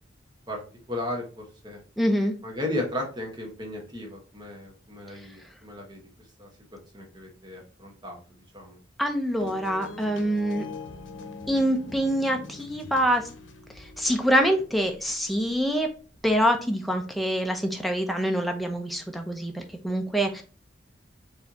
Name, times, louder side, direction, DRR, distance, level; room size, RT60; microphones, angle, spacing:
voice 1, 0.9-1.8 2.4-6.0 6.4-6.5 6.9-8.2 8.5-8.8, left 1 dB, 25° right, 0 dB, 1.4 m, -35 dB
voice 2, 2.0-2.3 9.0-10.6 11.5-13.3 13.8-15.9 16.2-20.4, equal, ahead, 3 dB, 0.6 m, -25 dB
sound 1, 9.4-15.5 16.1-16.2, left 3 dB, 90° left, 0.7 m, -42 dB
4.5 x 3.4 x 2.9 m, 0.37 s
head